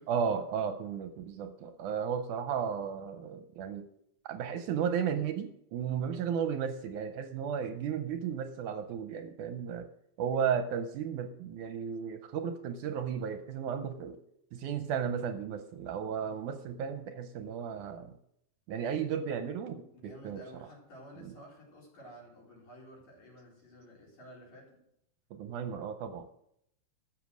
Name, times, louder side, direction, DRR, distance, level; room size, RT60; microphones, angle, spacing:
voice 1, 0.1-3.9 4.3-9.9 10.2-14.2 14.5-18.2 18.7-20.4 21.3-21.4 25.3-26.3, right 7 dB, 80° right, 8 dB, 2.0 m, -34 dB
voice 2, 6.0-6.3 16.1-16.6 19.9-24.8, equal, 55° left, -3 dB, 5.0 m, -53 dB
13.0 x 7.4 x 6.3 m, 0.76 s
omnidirectional pair, 3.9 m